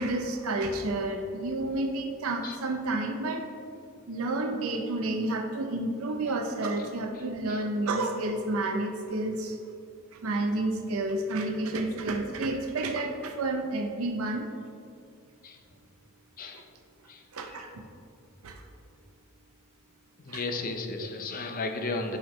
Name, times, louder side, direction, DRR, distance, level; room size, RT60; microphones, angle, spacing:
voice 1, 0.0-3.5 4.1-9.6 10.2-14.5 17.3-17.8 18.4-18.5 20.3-20.4 21.0-21.1, right 2 dB, 75° right, 3 dB, 0.6 m, -30 dB
voice 2, 7.1-7.6 15.4-15.6 16.4-16.6 17.1-17.2 17.5-17.6 20.2-22.2, left 3 dB, 40° left, 5 dB, 0.6 m, -35 dB
11.0 x 4.4 x 3.1 m, 2.4 s
head